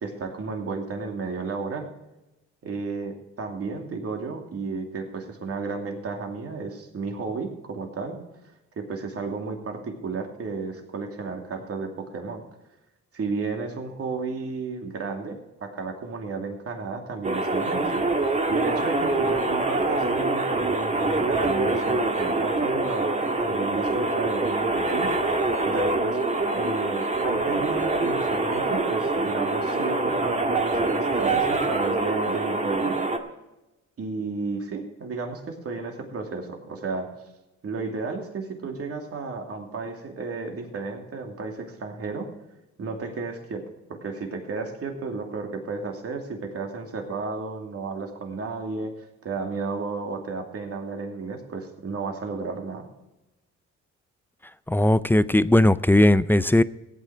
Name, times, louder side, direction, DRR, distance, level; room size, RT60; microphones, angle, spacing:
voice 1, 0.0-1.9 2.6-8.2 8.8-12.4 13.1-18.0 18.5-25.1 25.6-26.2 26.5-33.0 34.0-37.1 37.6-42.3 42.8-43.6 44.0-52.8, right 4 dB, 50° right, 2 dB, 2.8 m, -33 dB
sound 1, 17.2-33.2, right 2 dB, 25° right, 1.8 m, -25 dB
voice 2, 54.7-56.6, left 1 dB, 5° left, 15 dB, 0.5 m, -18 dB
16.0 x 9.2 x 4.7 m, 0.98 s
cardioid pair, 90°, 30 cm